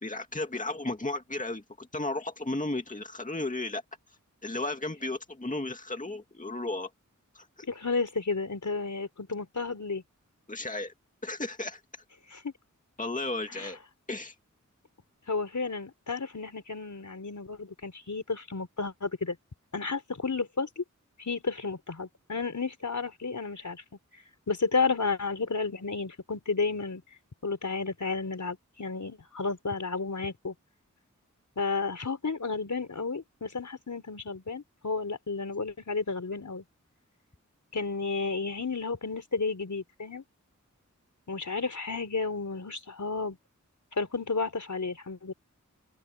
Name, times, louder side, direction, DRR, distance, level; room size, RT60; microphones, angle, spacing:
voice 1, 0.0-3.8 4.4-6.9 7.3-7.5 10.5-10.9 11.2-11.8 13.0-13.8 14.1-14.4, left 2 dB, 25° left, 2.2 m, -34 dB
voice 2, 7.7-10.0 12.4-12.5 13.5-13.7 15.3-19.4 19.7-20.8 21.2-23.8 24.5-27.0 27.4-30.5 31.6-36.6 37.7-40.2 41.3-43.4 44.0-45.3, left 4 dB, 70° left, 4.8 m, -32 dB
open air
wide cardioid pair, 65°, 31 cm